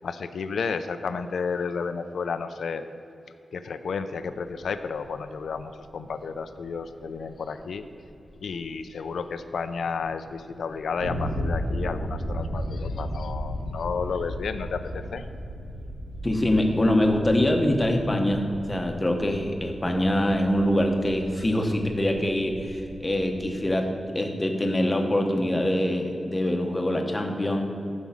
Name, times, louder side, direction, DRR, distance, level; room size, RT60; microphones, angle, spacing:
voice 1, 0.0-2.8 3.5-7.8 8.4-15.2, left 5 dB, 75° left, 10 dB, 0.5 m, -32 dB
sound 1, 4.2-23.5, equal, 85° right, 1.7 m, -36 dB
voice 2, 16.2-27.7, left 1 dB, 15° left, 3 dB, 1.0 m, -24 dB
11.0 x 5.2 x 7.3 m, 2.6 s
wide cardioid pair, 175°, 0 cm